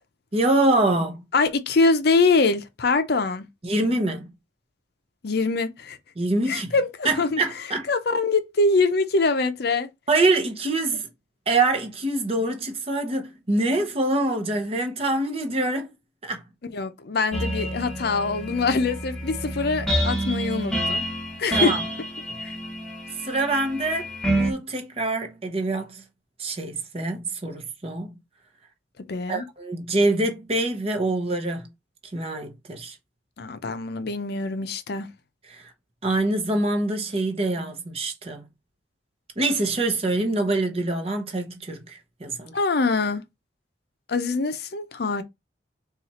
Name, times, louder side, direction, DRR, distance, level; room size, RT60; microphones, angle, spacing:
voice 1, 0.3-1.2 3.6-4.3 6.2-6.7 7.0-7.9 10.1-11.1 11.5-15.9 16.2-16.4 21.5-21.8 23.2-26.0 26.4-28.1 29.3-31.7 32.1-33.0 35.5-35.7 36.0-38.4 39.4-42.5, right 2 dB, 30° right, 0.8 m, -25 dB
voice 2, 1.3-3.4 5.2-6.0 6.5-7.4 7.9-9.9 16.7-21.0 21.4-21.7 22.4-22.5 29.1-29.4 33.4-35.1 42.5-43.2 44.1-45.2, left 3 dB, 55° left, 0.5 m, -24 dB
sound 1, 17.3-24.5, right 1 dB, 5° left, 0.9 m, -28 dB
4.2 x 2.4 x 4.1 m
head